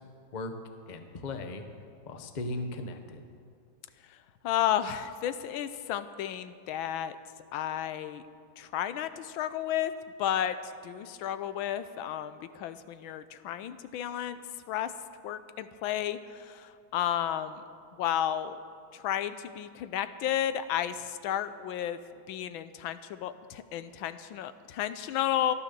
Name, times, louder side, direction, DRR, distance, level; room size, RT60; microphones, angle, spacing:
voice 1, 0.9-1.7 2.1-3.2, left 2 dB, 35° left, 6 dB, 0.7 m, -37 dB
voice 2, 4.4-7.2 7.5-8.2 8.6-9.9 10.2-14.4 14.7-14.9 15.2-17.6 18.0-18.6 18.9-22.0 22.3-25.5, left 10 dB, 90° left, 12 dB, 1.4 m, -32 dB
12.5 x 11.5 x 6.8 m, 2.3 s
omnidirectional pair, 2.1 m